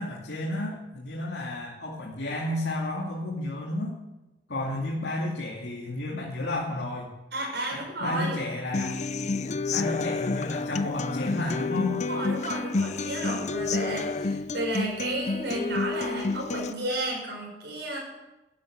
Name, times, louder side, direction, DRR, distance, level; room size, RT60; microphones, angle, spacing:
voice 1, 0.0-4.0 4.5-7.1 7.7-9.0 9.7-12.0, left 2 dB, 75° left, -4 dB, 2.6 m, -32 dB
voice 2, 7.3-8.4 12.0-18.0, right 1 dB, 70° right, -1 dB, 6.7 m, -32 dB
Human voice / Acoustic guitar, 8.7-16.7, left 3 dB, 40° left, 0.5 m, -29 dB
13.0 x 12.5 x 8.0 m, 1.0 s
head